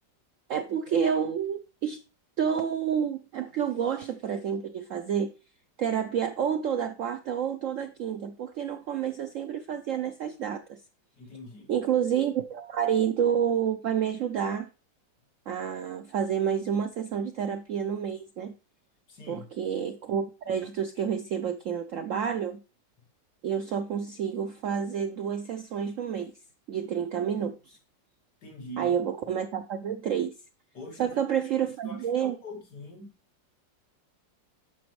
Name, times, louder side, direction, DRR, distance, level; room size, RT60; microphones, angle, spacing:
voice 1, 0.5-2.0 2.4-5.3 5.8-10.8 11.7-14.7 15.5-18.5 19.3-22.6 23.4-26.3 26.7-27.8 28.8-30.3 31.0-32.4, right 8 dB, 70° right, 0.7 m, -29 dB
voice 2, 11.2-11.7 19.1-19.5 28.4-29.0 30.7-31.5 31.8-33.1, equal, 65° left, 2.6 m, -43 dB
11.0 x 6.0 x 3.1 m
omnidirectional pair, 2.0 m